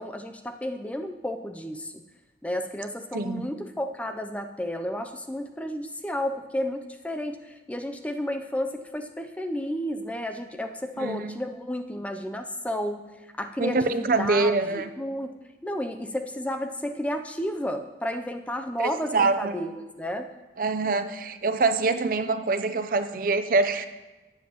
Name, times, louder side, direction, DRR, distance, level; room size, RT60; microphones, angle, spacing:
voice 1, 0.0-1.9 2.4-15.3 15.6-19.7 20.0-20.3, equal, 5° left, 6 dB, 0.4 m, -32 dB
voice 2, 11.0-11.3 13.6-14.9 18.8-19.6 20.6-23.9, right 3 dB, 50° right, 9 dB, 0.5 m, -25 dB
17.5 x 7.3 x 2.9 m, 1.2 s
head